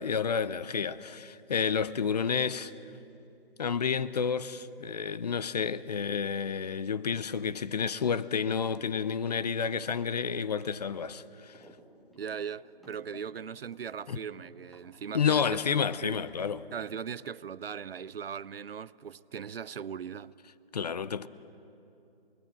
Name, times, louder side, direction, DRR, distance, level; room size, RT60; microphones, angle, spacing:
voice 1, 0.0-2.7 3.6-11.6 14.1-14.2 15.1-16.6 20.7-21.3, left 6 dB, 40° left, 0.7 m, -30 dB
sound 1, 11.5-11.8 12.1-15.9 16.3-17.1, right 1 dB, ahead, 1.2 m, -56 dB
voice 2, 12.2-16.2 16.7-20.3, right 7 dB, 70° right, 0.7 m, -39 dB
28.0 x 21.0 x 7.5 m
hypercardioid pair, 155°, 30 cm